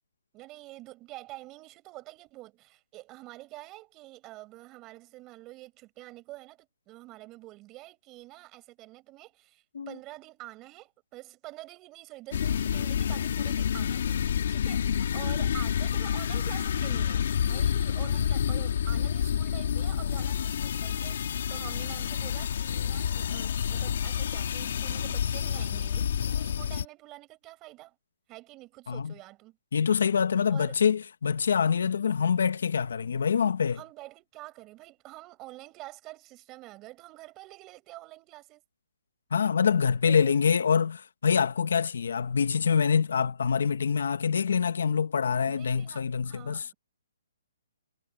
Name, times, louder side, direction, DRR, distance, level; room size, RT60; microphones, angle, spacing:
voice 1, 0.3-28.0 28.3-29.6 30.5-30.7 33.7-38.6 40.0-40.3 45.5-46.7, right 19 dB, 15° right, 7.0 m, -47 dB
sound 1, 12.3-26.8, left 8 dB, 50° left, 1.6 m, -29 dB
voice 2, 29.7-33.8 39.3-46.7, left 6 dB, 65° left, 1.2 m, -25 dB
hypercardioid pair, 175°, 0 cm